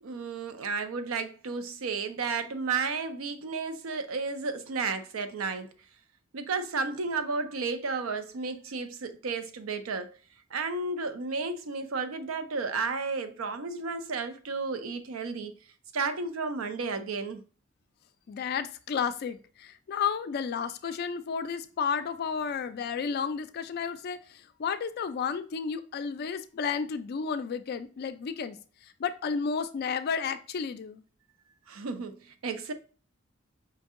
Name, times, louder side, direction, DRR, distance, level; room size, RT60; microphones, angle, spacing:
voice 1, 0.0-5.7 6.3-10.1 10.5-15.5 15.9-17.4 31.7-32.7, right 4 dB, 90° right, 0.5 m, -32 dB
voice 2, 18.3-31.0, left 6 dB, 50° left, 0.3 m, -32 dB
5.1 x 2.7 x 2.5 m
head